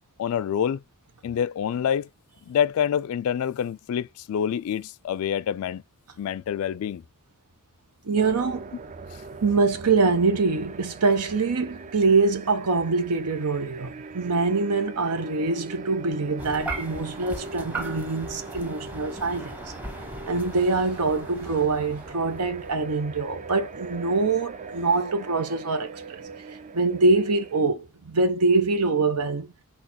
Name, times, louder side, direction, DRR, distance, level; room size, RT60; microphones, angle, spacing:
voice 1, 0.2-0.8 1.2-2.1 2.5-5.8 6.2-7.0, left 8 dB, 70° left, 0.3 m, -26 dB
voice 2, 8.0-8.8 9.4-19.7 20.3-26.2 26.7-29.5, right 3 dB, 90° right, 0.8 m, -24 dB
sound 1, 8.2-27.6, right 4 dB, 35° right, 0.4 m, -41 dB
sound 2, 16.4-23.0, right 2 dB, 10° right, 0.9 m, -38 dB
6.3 x 2.9 x 2.8 m
head